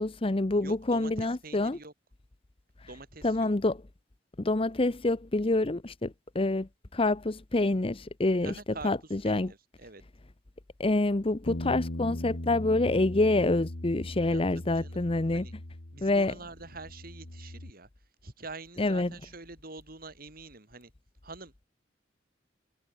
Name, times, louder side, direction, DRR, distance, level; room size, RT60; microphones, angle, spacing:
voice 1, 0.0-1.8 3.2-3.8 4.4-8.5 8.8-9.5 10.8-15.5 16.0-16.3 18.8-19.1, left 2 dB, 30° left, 0.8 m, -27 dB
voice 2, 0.6-1.9 2.9-3.5 8.4-10.0 14.3-14.4 14.7-15.0 15.3-15.5 15.9-17.9 18.2-20.9 21.2-21.7, right 3 dB, 50° right, 3.8 m, -45 dB
Bass guitar, 11.5-16.2 16.5-17.7, left 1 dB, 80° left, 2.3 m, -39 dB
head